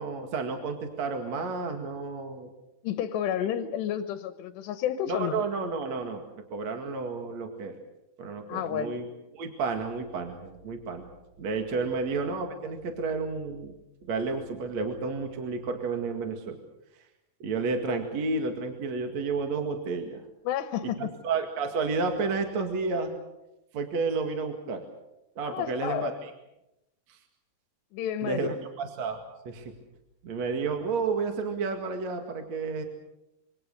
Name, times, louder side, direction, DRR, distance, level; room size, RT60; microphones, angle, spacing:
voice 1, 0.0-2.5 3.4-3.5 5.1-7.8 8.2-9.1 9.3-11.1 11.4-13.8 14.0-16.6 17.4-20.3 20.8-23.1 23.7-24.8 25.4-26.3 27.1-27.2 28.2-29.2 29.4-29.7 30.2-32.8, right 4 dB, 50° right, 4 dB, 2.8 m, -31 dB
voice 2, 2.8-5.4 8.5-9.0 11.7-11.9 20.5-21.1 25.4-26.1 27.9-28.5, left 10 dB, 85° left, 10 dB, 3.2 m, -31 dB
26.0 x 25.5 x 6.6 m, 0.92 s
omnidirectional pair, 4.8 m